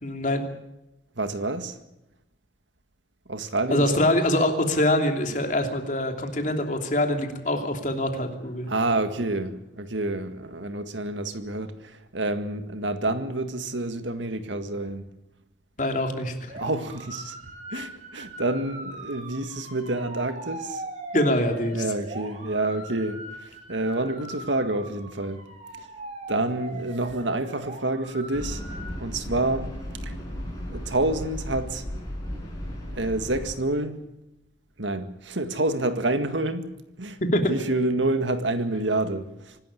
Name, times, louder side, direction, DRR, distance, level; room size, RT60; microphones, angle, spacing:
voice 1, 0.0-0.4 3.7-8.7 15.8-16.6 21.1-21.9 37.3-37.4, left 1 dB, 40° left, 3.0 m, -24 dB
voice 2, 1.2-1.8 3.3-4.0 8.7-15.1 16.6-17.3 17.7-20.8 21.7-25.4 26.3-28.6 29.0-29.7 30.0-30.1 30.7-31.8 32.9-34.0 34.8-37.2 37.5-39.6, right 2 dB, 85° right, 1.9 m, -28 dB
sound 1, 16.5-28.9, right 1 dB, 35° right, 5.3 m, -40 dB
sound 2, 28.3-33.5, equal, 15° left, 7.5 m, -35 dB
25.0 x 12.5 x 9.9 m
head